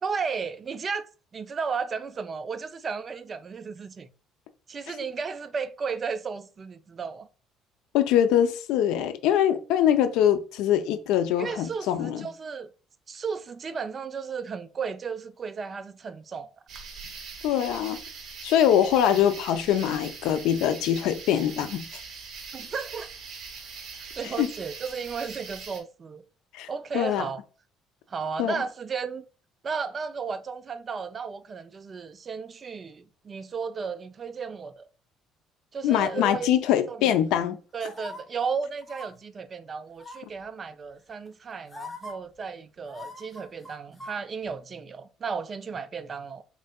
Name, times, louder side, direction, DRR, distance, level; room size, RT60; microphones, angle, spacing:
voice 1, 0.0-4.1 4.7-7.3 11.4-12.7 13.1-16.5 22.5-23.1 24.2-26.2 26.7-27.4 28.1-29.2 29.6-34.9 35.7-36.5 36.9-37.1 37.7-46.4, right 5 dB, 30° right, 0.3 m, -34 dB
voice 2, 7.9-12.3 17.4-18.0 18.4-21.9 24.4-24.5 26.5-26.7 26.9-27.3 28.4-28.6 35.8-37.6, left 10 dB, 85° left, 0.4 m, -23 dB
sound 1, 16.7-25.8, right 5 dB, 50° right, 1.0 m, -42 dB
sound 2, 37.8-38.2 38.8-39.1 40.0-40.4 41.3-41.4 41.7-42.1 42.9-44.1 44.5-44.6, left 2 dB, 15° left, 0.8 m, -41 dB
4.3 x 3.7 x 2.3 m
cardioid pair, 125°, 0 cm